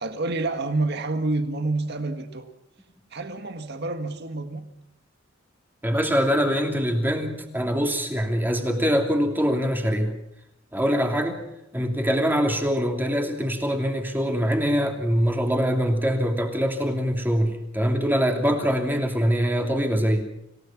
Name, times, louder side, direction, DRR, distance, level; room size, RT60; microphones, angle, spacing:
voice 1, 0.0-2.5 3.1-4.6, right 2 dB, 60° right, 7 dB, 1.8 m, -28 dB
voice 2, 5.8-10.1 10.7-11.4 11.7-20.3, equal, 10° right, 3 dB, 2.9 m, -23 dB
27.0 x 17.0 x 6.0 m, 0.82 s
head